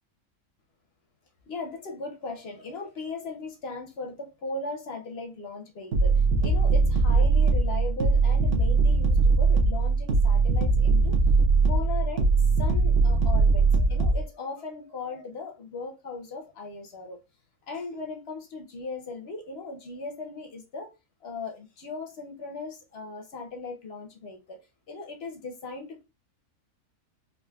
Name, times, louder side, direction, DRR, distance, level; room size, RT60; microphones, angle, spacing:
voice 1, 1.5-11.2 11.7-12.3 12.6-17.2 17.7-20.9 21.2-24.6 24.9-26.0, left 3 dB, 60° left, 0.7 m, -38 dB
sound 1, 5.9-14.2, right 3 dB, 55° right, 0.7 m, -21 dB
3.8 x 2.4 x 2.2 m
omnidirectional pair, 1.7 m